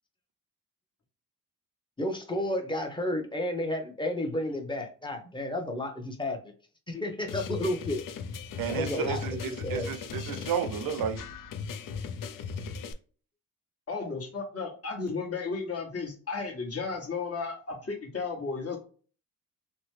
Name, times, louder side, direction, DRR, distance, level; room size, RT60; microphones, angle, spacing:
voice 1, 2.0-6.5 6.9-8.0 8.6-10.0, left 1 dB, 15° left, 0.9 m, -32 dB
sound 1, 7.3-12.9, left 5 dB, 65° left, 0.5 m, -37 dB
voice 2, 8.6-11.2, right 8 dB, 75° right, 0.6 m, -32 dB
voice 3, 13.9-18.8, left 4 dB, 45° left, 1.3 m, -34 dB
2.9 x 2.1 x 3.2 m
cardioid pair, 70°, 35 cm